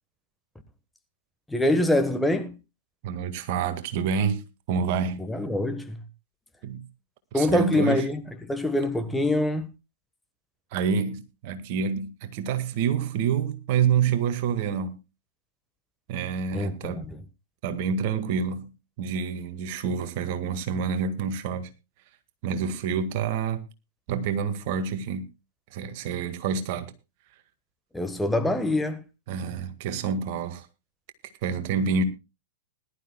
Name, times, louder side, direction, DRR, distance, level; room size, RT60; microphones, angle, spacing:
voice 1, 1.5-2.5 5.1-6.0 7.3-9.7 16.5-17.2 27.9-29.0, left 1 dB, 5° left, 1.3 m, -25 dB
voice 2, 3.0-4.4 4.7-5.2 6.6-6.9 7.3-8.0 10.7-15.0 16.1-17.0 17.6-18.7 19.0-21.7 22.4-23.6 24.1-25.3 25.7-26.9 29.3-30.7 31.4-32.0, right 6 dB, 50° right, 1.8 m, -27 dB
20.5 x 12.0 x 2.3 m
hypercardioid pair, 110°, 0 cm